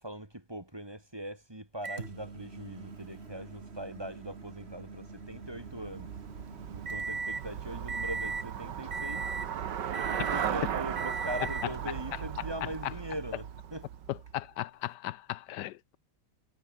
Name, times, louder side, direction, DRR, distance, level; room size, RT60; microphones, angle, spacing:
voice 1, 0.0-6.1 6.7-9.3 10.1-13.9, right 1 dB, 15° right, 2.6 m, -41 dB
Microwave oven, 1.8-7.5 7.9-8.5 8.9-9.5 9.9-10.6 11.0-11.8 12.7-12.8 14.8-14.9, right 4 dB, 35° right, 2.2 m, -39 dB
Traffic noise roadway noise / Bicycle, 5.3-14.5, right 9 dB, 80° right, 1.9 m, -37 dB
voice 2, 14.3-16.0, left 14 dB, 80° left, 1.2 m, -37 dB
omnidirectional pair, 1.9 m